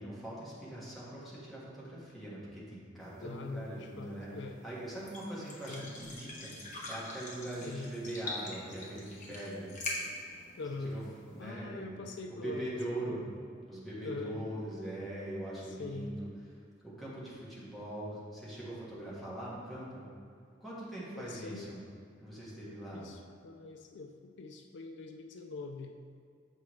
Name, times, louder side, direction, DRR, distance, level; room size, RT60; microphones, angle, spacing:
voice 1, 0.0-4.3 4.6-9.7 10.8-11.9 12.3-13.2 13.7-16.3 16.8-20.1 20.6-21.8 22.2-23.1, right 1 dB, ahead, -8 dB, 1.6 m, -42 dB
sound 1, 3.0-11.5, left 2 dB, 45° left, 1.1 m, -45 dB
voice 2, 3.2-4.6 5.7-5.9 7.6-7.9 10.6-11.0 11.4-13.3 14.0-14.4 15.7-16.1 21.1-21.7 22.9-26.0, left 3 dB, 65° left, 4 dB, 0.4 m, -43 dB
7.8 x 4.8 x 3.2 m, 2.3 s
head